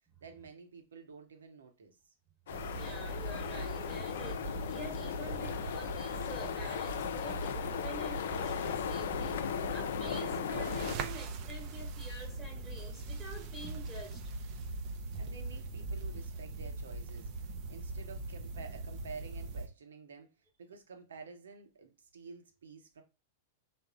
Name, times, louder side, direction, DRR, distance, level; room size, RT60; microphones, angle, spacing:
voice 1, 0.2-1.9 15.1-20.3 20.6-23.0, right 5 dB, 80° right, 0.8 m, -50 dB
sound 1, 2.5-11.0, left 8 dB, 70° left, 0.3 m, -37 dB
sound 2, 2.5-19.7, right 2 dB, 45° right, 0.5 m, -41 dB
voice 2, 2.6-14.2, right 2 dB, 10° right, 1.1 m, -47 dB
3.5 x 2.0 x 3.8 m
hypercardioid pair, 105°, 0 cm